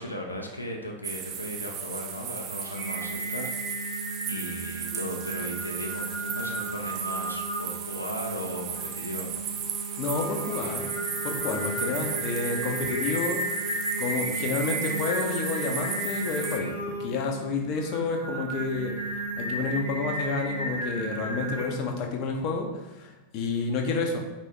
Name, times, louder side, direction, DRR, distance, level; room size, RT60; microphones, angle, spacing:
voice 1, 0.0-3.9 4.3-9.4 11.8-12.1, equal, 85° left, 0 dB, 0.5 m, -37 dB
sound 1, 1.0-16.6, right 8 dB, 35° right, 0.4 m, -36 dB
Singing, 2.7-21.6, right 1 dB, 90° right, 1.4 m, -34 dB
voice 2, 10.0-10.9 11.2-13.4 14.0-18.9 19.4-24.2, left 4 dB, 40° left, 2 dB, 0.6 m, -30 dB
4.3 x 3.2 x 3.1 m, 1.1 s
figure-of-eight pair, 90°, 0 cm